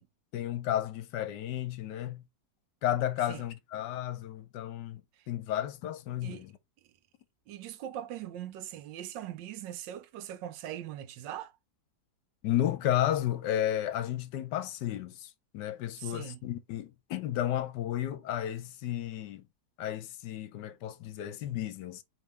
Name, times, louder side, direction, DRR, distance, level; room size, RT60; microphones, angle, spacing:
voice 1, 0.3-2.2 2.8-5.0 5.3-6.5 12.4-19.4 19.8-22.0, left 12 dB, 75° left, 1.2 m, -33 dB
voice 2, 7.5-11.5 16.0-16.4, right 11 dB, 90° right, 1.3 m, -41 dB
5.1 x 3.2 x 3.2 m
omnidirectional pair, 1.9 m